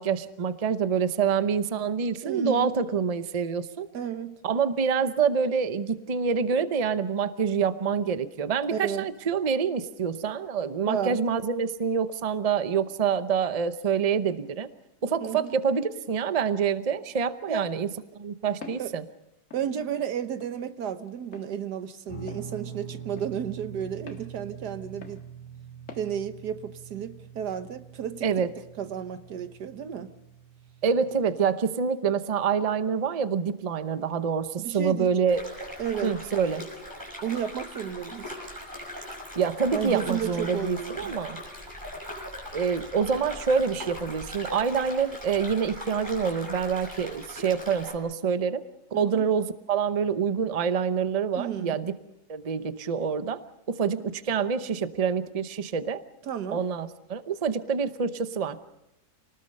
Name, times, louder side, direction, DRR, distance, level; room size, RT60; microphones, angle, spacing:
voice 1, 0.0-3.9 4.4-14.7 15.0-17.9 18.1-19.0 28.2-28.5 30.8-35.4 36.0-36.7 39.4-41.4 42.5-48.6 48.9-51.9 52.3-53.4 53.7-56.0 56.5-58.8, right 6 dB, 35° right, 0.7 m, -26 dB
voice 2, 2.2-2.8 3.9-4.4 8.7-9.1 10.8-11.2 15.2-15.5 17.5-17.7 18.8-18.9 19.5-25.2 25.9-28.3 28.8-30.1 34.6-35.1 35.8-36.2 37.2-38.3 39.7-41.1 48.9-49.3 51.3-51.8 56.3-56.6, right 8 dB, 85° right, 1.7 m, -32 dB
Walk footsteps, 18.6-18.9 19.5-19.7 20.4-20.6 21.3-21.5 22.3-22.5 23.2-23.3 24.1-24.3 25.0-25.2 25.9-26.1, left 5 dB, 50° left, 2.0 m, -44 dB
Guitar, 22.1-31.4, right 7 dB, 20° left, 2.4 m, -44 dB
sound 1, 35.3-48.0, left 1 dB, 10° right, 5.5 m, -40 dB
27.5 x 19.5 x 5.4 m
omnidirectional pair, 1.7 m